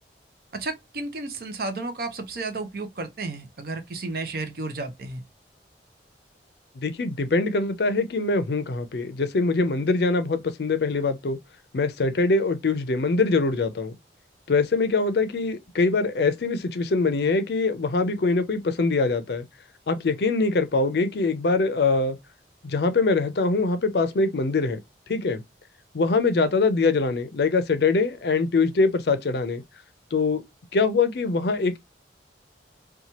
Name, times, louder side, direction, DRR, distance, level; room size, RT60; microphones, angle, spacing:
voice 1, 0.5-5.2, right 3 dB, 55° right, 0.6 m, -32 dB
voice 2, 6.8-11.4 11.7-13.9 14.5-19.5 19.9-22.2 22.6-24.8 25.1-25.4 25.9-29.6 30.1-30.4 30.7-31.8, left 3 dB, 65° left, 0.5 m, -23 dB
2.9 x 2.2 x 2.6 m
head